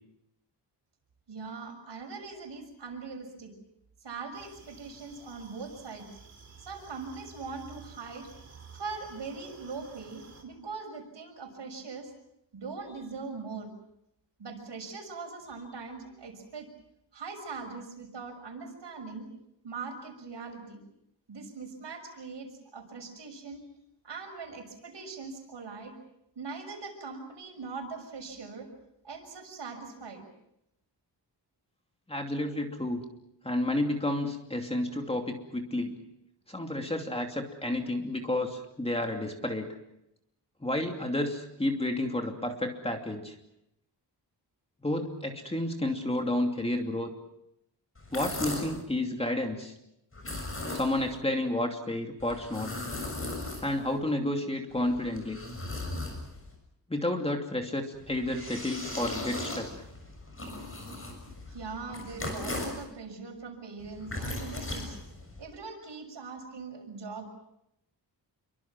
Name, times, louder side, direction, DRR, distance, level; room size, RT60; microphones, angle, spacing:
voice 1, 1.3-3.5 4.0-6.1 6.6-8.3 8.7-12.1 12.5-13.7 14.4-16.7 17.1-19.3 19.6-20.8 21.3-23.7 24.0-26.0 26.3-28.7 29.0-30.3 61.5-65.0 65.4-67.4, right 4 dB, 75° right, 4 dB, 6.5 m, -41 dB
sound 1, 4.3-10.4, right 4 dB, 35° right, 4.4 m, -54 dB
voice 2, 32.1-33.0 33.4-35.9 36.5-39.7 40.6-43.3 44.8-47.1 48.1-49.7 50.7-52.8 53.6-55.4 56.9-59.7, left 1 dB, 15° left, 3 dB, 2.7 m, -31 dB
sound 2, 48.0-48.8 50.1-51.2 52.2-54.0 54.7-56.5 57.9-62.8 63.8-65.4, left 2 dB, 30° left, 6.8 m, -38 dB
28.0 x 24.5 x 6.1 m, 0.82 s
wide cardioid pair, 160°, 43 cm